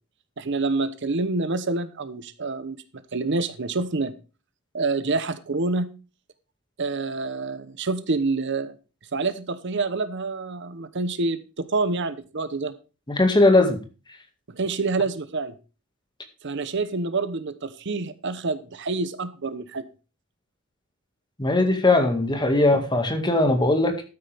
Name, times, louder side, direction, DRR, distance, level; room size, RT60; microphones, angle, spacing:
voice 1, 0.4-4.1 4.7-5.9 6.8-8.8 9.1-12.7 14.5-15.5 16.4-19.8, right 3 dB, 60° right, 13 dB, 0.9 m, -27 dB
voice 2, 13.1-13.8 21.4-24.0, left 2 dB, 20° left, 6 dB, 2.0 m, -19 dB
12.5 x 9.8 x 3.5 m, 0.33 s
head